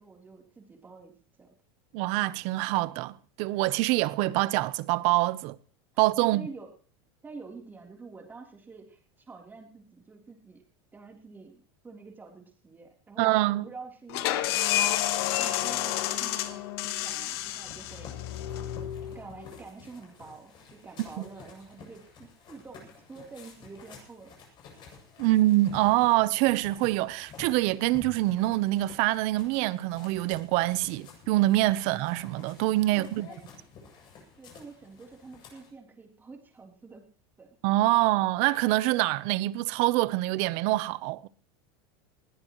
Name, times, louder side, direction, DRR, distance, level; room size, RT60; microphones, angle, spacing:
voice 1, 0.0-1.5 6.2-6.7 7.2-10.6 10.9-15.0 15.4-18.2 19.1-24.4 32.9-33.4 34.4-37.1 37.4-37.6, right 4 dB, 15° right, 3.6 m, -47 dB
voice 2, 1.9-5.6 6.0-6.5 13.2-13.7 25.2-33.3 37.6-41.3, right 18 dB, 55° right, 0.8 m, -25 dB
sound 1, 14.1-19.6, left 13 dB, 70° left, 1.5 m, -30 dB
sound 2, 17.6-35.7, left 5 dB, 35° left, 7.6 m, -51 dB
20.5 x 17.5 x 3.1 m
supercardioid pair, 145°, 14 cm